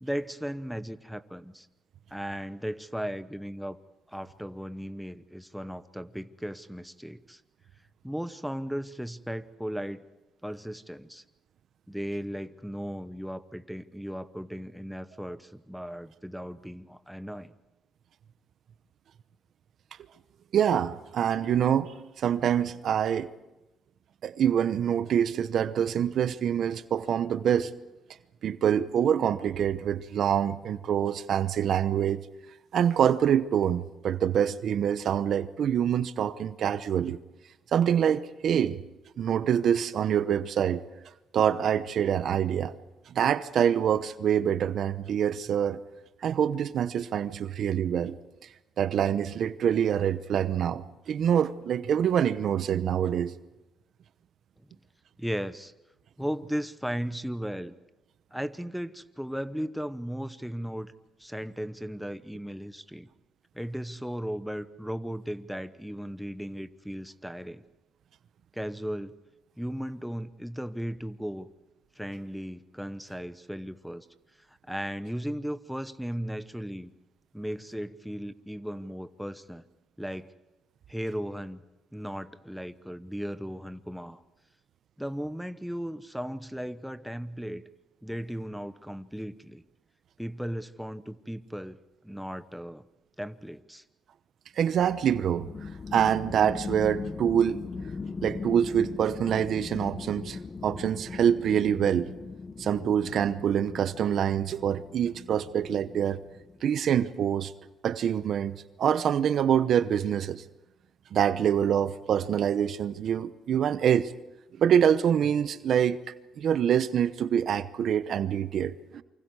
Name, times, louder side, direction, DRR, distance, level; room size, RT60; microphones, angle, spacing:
voice 1, 0.0-1.7 2.1-3.8 4.1-7.4 8.0-10.0 10.4-11.2 11.9-17.5 55.2-55.7 56.2-57.7 58.3-60.9 61.2-63.1 63.5-67.6 68.5-69.1 69.6-71.5 72.0-74.1 74.5-76.9 77.3-79.6 80.0-80.3 80.9-81.6 81.9-84.2 85.0-87.6 88.0-89.6 90.2-91.8 92.0-92.8 93.2-93.8, equal, ahead, 1.0 m, -36 dB
voice 2, 20.5-23.3 24.2-27.8 28.4-32.2 32.7-37.2 37.7-38.8 39.2-40.8 41.3-42.7 43.1-45.8 46.2-48.2 48.8-53.3 94.6-95.5 95.9-97.6 98.2-102.1 102.6-106.2 106.6-107.5 107.8-110.4 111.1-114.1 114.6-116.0 116.4-119.0, right 9 dB, 65° right, 0.8 m, -25 dB
sound 1, 94.8-106.8, left 4 dB, 35° left, 0.8 m, -40 dB
28.5 x 24.5 x 4.8 m
cardioid pair, 90°, 0 cm